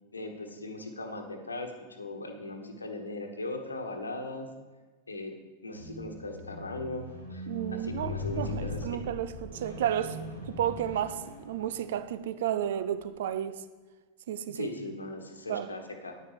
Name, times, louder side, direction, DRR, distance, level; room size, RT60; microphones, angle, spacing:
voice 1, 0.1-4.5 5.1-5.3 5.6-9.0 14.4-16.2, left 2 dB, 80° left, 1.2 m, -39 dB
Squeak, 5.7-12.1 12.8-13.0, left 1 dB, 85° right, 2.1 m, -40 dB
voice 2, 7.5-10.2 10.5-13.6 14.3-14.7 15.5-15.8, right 10 dB, 55° right, 0.5 m, -32 dB
9.5 x 9.2 x 4.9 m
figure-of-eight pair, 90°, 0 cm